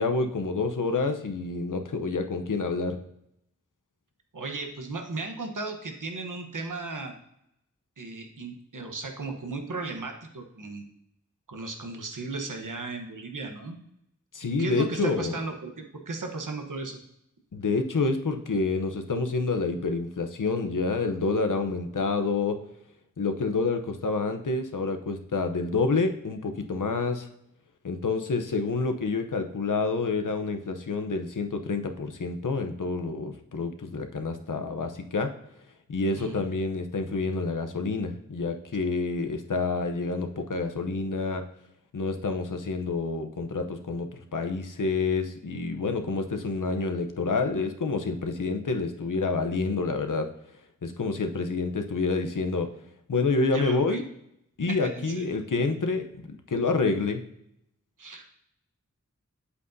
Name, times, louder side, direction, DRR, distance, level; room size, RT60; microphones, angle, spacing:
voice 1, 0.0-3.0 14.3-15.4 17.5-22.6 23.2-27.3 27.8-35.3 35.9-41.4 41.9-50.3 50.8-52.7 53.1-54.0 54.6-56.1 56.5-57.2, left 3 dB, 85° left, 6 dB, 0.8 m, -28 dB
voice 2, 4.3-7.1 8.0-10.9 11.5-13.8 14.4-17.0 36.2-36.5 53.5-54.0 54.7-55.2 58.0-58.4, right 3 dB, 90° right, 4 dB, 1.1 m, -36 dB
8.1 x 8.0 x 2.7 m, 0.78 s
wide cardioid pair, 45°, 30 cm